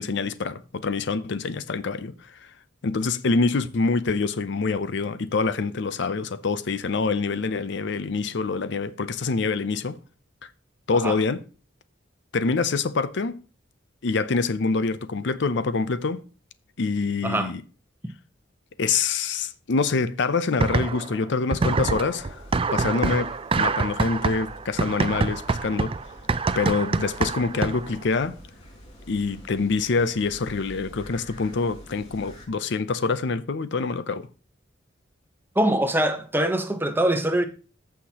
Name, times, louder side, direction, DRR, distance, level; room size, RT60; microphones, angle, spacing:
voice 1, 0.0-2.3 2.8-10.0 10.4-10.5 10.9-11.4 12.3-13.4 14.0-16.2 16.8-17.6 18.8-22.4 22.7-25.9 26.6-28.3 29.1-34.3, left 4 dB, 65° left, 0.6 m, -25 dB
voice 2, 17.2-17.5 35.5-37.4, right 1 dB, 10° right, 0.9 m, -23 dB
sound 1, 20.6-21.2 21.5-28.0, right 4 dB, 30° right, 0.4 m, -26 dB
sound 2, 21.8-32.5, equal, 35° left, 2.7 m, -46 dB
14.5 x 5.8 x 2.9 m
head